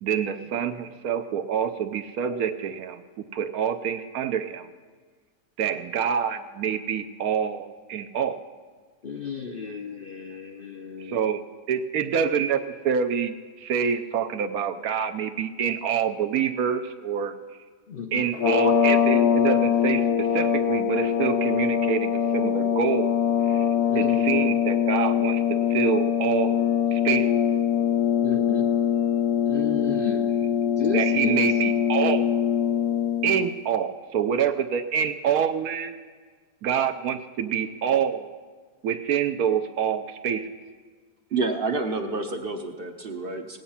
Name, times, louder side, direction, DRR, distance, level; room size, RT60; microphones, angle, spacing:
voice 1, 0.0-3.0 3.3-4.7 5.6-8.4 11.0-17.3 18.1-23.2 23.4-23.7 23.9-27.3 30.9-32.5 33.2-36.0 36.6-38.4 38.8-40.5, right 8 dB, 70° right, 8 dB, 1.0 m, -26 dB
voice 2, 9.0-11.2 17.9-18.3 23.9-24.7 28.2-28.7 29.5-30.4 30.8-31.5, left 6 dB, 50° left, 2 dB, 0.6 m, -33 dB
sound 1, 18.3-33.5, left 8 dB, 70° left, 1.3 m, -23 dB
voice 3, 41.3-43.6, right 3 dB, 45° right, 5 dB, 0.8 m, -28 dB
17.5 x 9.4 x 5.6 m, 1.5 s
omnidirectional pair, 1.8 m